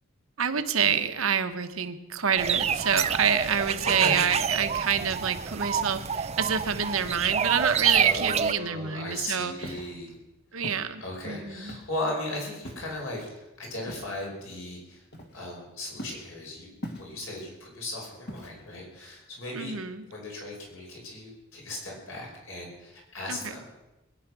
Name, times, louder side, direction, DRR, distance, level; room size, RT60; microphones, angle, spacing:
voice 1, 0.4-9.7 10.5-11.8 19.5-20.0 23.3-23.5, right 7 dB, 75° right, 9 dB, 1.2 m, -27 dB
sound 1, 2.4-8.5, right 7 dB, 30° right, 0.5 m, -27 dB
voice 2, 3.8-4.2 7.9-10.2 10.5-10.6 11.0-15.0 15.3-16.7 16.9-19.8 20.1-23.8, left 1 dB, 65° left, -1 dB, 5.5 m, -37 dB
Walk footsteps, 9.6-10.0 10.6-10.9 11.7-12.0 12.6-13.0 13.9-14.2 15.1-15.6 16.0-16.3 16.8-17.4 18.3-18.8, equal, 50° left, 2.0 m, -40 dB
21.0 x 10.5 x 6.1 m, 1.0 s
head